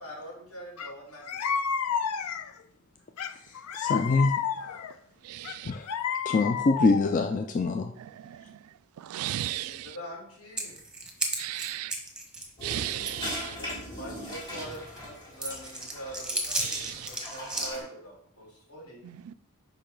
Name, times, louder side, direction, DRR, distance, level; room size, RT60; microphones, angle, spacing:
voice 1, 0.0-1.5 9.6-10.8 13.4-19.1, equal, 75° left, 3.3 m, -44 dB
sound 1, 0.8-0.9 1.3-2.6 3.2-4.9 5.5-7.2, left 7 dB, 90° left, 0.5 m, -31 dB
voice 2, 3.7-4.3 4.6-4.8 5.7-5.9 6.3-7.9, left 3 dB, 35° left, 0.4 m, -25 dB
voice 3, 5.2-5.7 8.0-8.6 9.0-9.9 11.4-11.9 12.6-13.6 16.6-17.1 19.0-19.3, right 13 dB, 75° right, 0.3 m, -35 dB
sound 2, 10.6-12.5 13.1-13.2 13.6-13.7 14.4-15.0 15.4-17.7, right 2 dB, 5° right, 1.3 m, -34 dB
sound 3, 12.6-17.8, equal, 20° left, 3.4 m, -40 dB
8.8 x 5.4 x 3.9 m
head